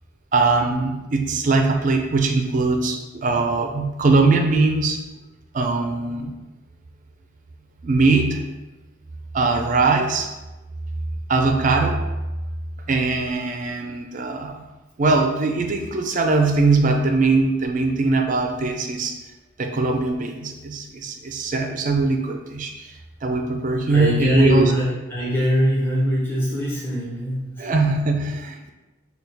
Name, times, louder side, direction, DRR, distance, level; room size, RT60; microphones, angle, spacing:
voice 1, 0.3-5.0 5.5-6.3 7.8-8.4 9.3-10.3 11.3-12.0 12.9-14.7 15.0-19.2 19.6-24.7 27.6-28.7, right 3 dB, 40° right, 4 dB, 0.4 m, -21 dB
voice 2, 23.9-27.7, equal, 10° left, -7 dB, 0.7 m, -22 dB
6.7 x 2.3 x 3.3 m, 1.1 s
head